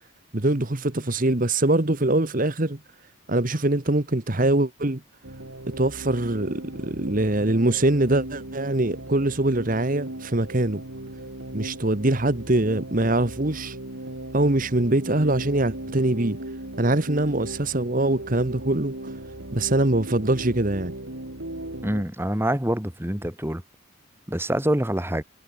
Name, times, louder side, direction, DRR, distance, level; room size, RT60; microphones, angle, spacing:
voice 1, 0.3-2.8 3.3-5.0 5.7-10.8 11.5-13.8 14.3-16.4 16.8-19.1 19.5-20.9, right 2 dB, 40° right, 1.3 m, -23 dB
Do Robots Get Bored, 5.2-22.0, right 1 dB, 70° right, 3.2 m, -37 dB
voice 2, 21.8-23.6 24.3-25.2, right 1 dB, 10° right, 2.0 m, -25 dB
head